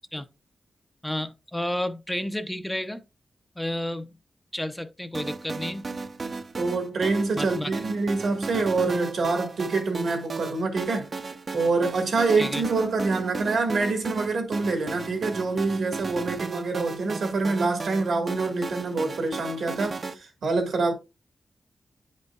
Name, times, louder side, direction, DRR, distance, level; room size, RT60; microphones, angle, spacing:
voice 1, 1.0-3.0 3.6-4.1 4.5-5.9 7.3-7.8 12.4-12.6, left 1 dB, 10° left, 0.5 m, -31 dB
sound 1, 5.1-20.1, right 4 dB, 50° right, 0.6 m, -35 dB
voice 2, 6.6-11.1 11.5-20.9, right 3 dB, 80° right, 1.6 m, -26 dB
9.1 x 5.3 x 2.3 m
cardioid pair, 80°, 0 cm